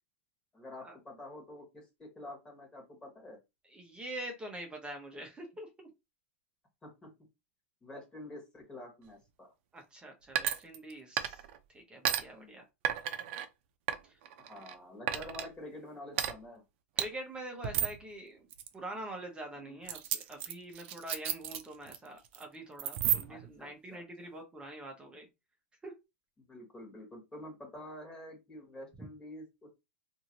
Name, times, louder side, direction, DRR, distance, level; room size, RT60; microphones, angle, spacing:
voice 1, 0.5-3.4 6.8-7.1 7.8-9.5 12.3-12.6 14.4-16.6 19.6-19.9 23.3-24.0 26.5-29.7, left 1 dB, 10° left, 0 dB, 1.4 m, -48 dB
voice 2, 3.6-5.9 9.7-11.4 11.7-12.6 14.0-14.2 15.1-15.3 17.0-18.5 18.7-25.3 25.8-25.9 29.0-29.1, right 1 dB, 15° right, 2 dB, 0.8 m, -45 dB
sound 1, 10.3-10.9 11.2-11.6 12.0-12.2 12.8-13.4 13.9-14.7 15.1-15.5 16.1-16.3 17.0-17.1 17.6-18.0 18.5-18.7 19.9-22.0 22.2-22.4 22.8-23.5, right 11 dB, 55° right, 0.6 m, -33 dB
2.7 x 2.6 x 2.9 m, 0.24 s
hypercardioid pair, 130°, 8 cm